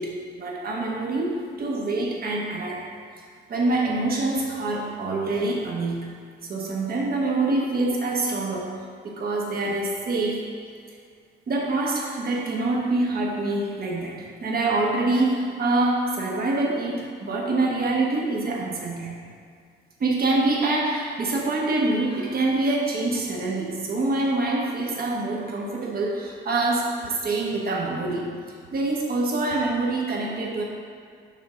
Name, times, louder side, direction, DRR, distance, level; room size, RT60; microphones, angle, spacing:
voice 1, 0.0-2.8 3.5-6.1 6.4-10.5 11.5-19.2 20.0-28.3 28.7-30.6, right 2 dB, 50° right, -2 dB, 1.2 m, -25 dB
5.7 x 3.7 x 5.6 m, 2.2 s
cardioid pair, 90°, 20 cm